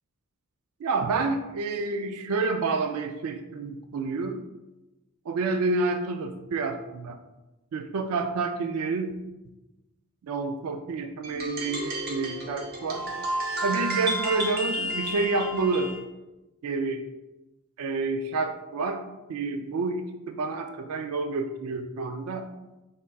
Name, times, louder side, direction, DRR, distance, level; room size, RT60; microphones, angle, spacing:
voice 1, 0.8-4.4 5.3-7.2 7.7-9.2 10.2-13.1 13.6-15.9 16.6-17.0 17.8-19.0 19.3-22.5, right 3 dB, 85° right, 7 dB, 0.4 m, -29 dB
sound 1, 11.2-16.0, right 1 dB, 45° right, 0.8 m, -31 dB
5.4 x 3.5 x 2.3 m, 1.0 s
head